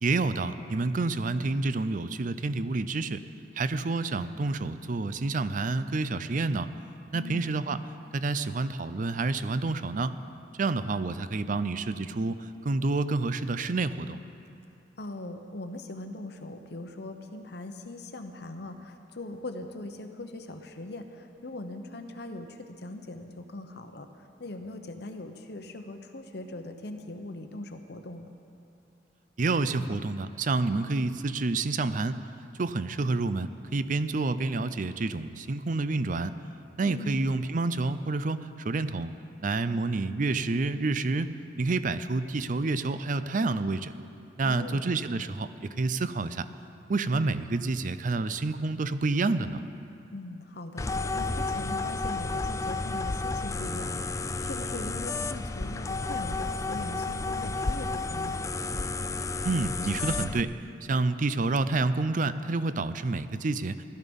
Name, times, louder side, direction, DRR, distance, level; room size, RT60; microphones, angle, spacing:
voice 1, 0.0-3.2 3.6-6.7 7.1-7.8 8.1-10.1 10.6-14.2 29.4-32.2 32.6-36.3 36.8-38.4 38.6-39.1 39.4-41.3 41.6-43.9 44.4-46.5 46.9-49.6 59.4-60.5 60.9-63.8, right 3 dB, 45° right, 13 dB, 0.5 m, -28 dB
voice 2, 7.1-7.4 15.0-28.3 36.9-37.2 44.4-44.8 50.1-58.4, left 2 dB, 60° left, 6 dB, 1.0 m, -41 dB
sound 1, 50.8-60.4, left 3 dB, 15° left, 0.3 m, -31 dB
16.0 x 12.5 x 5.4 m, 2.6 s
head